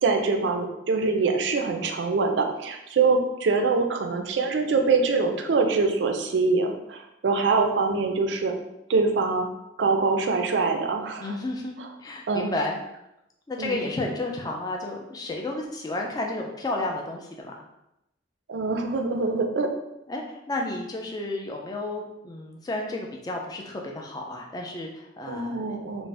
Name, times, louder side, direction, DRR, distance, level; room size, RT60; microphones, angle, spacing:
voice 1, 0.0-8.6 8.9-9.5 9.8-11.3 11.8-11.9 12.3-12.5 13.6-13.8 18.5-19.7 25.3-26.1, right 4 dB, 65° right, 4 dB, 0.4 m, -24 dB
voice 2, 11.2-12.8 13.5-17.5 20.1-26.1, left 2 dB, 20° left, 1 dB, 0.3 m, -32 dB
2.5 x 2.1 x 3.2 m, 0.87 s
head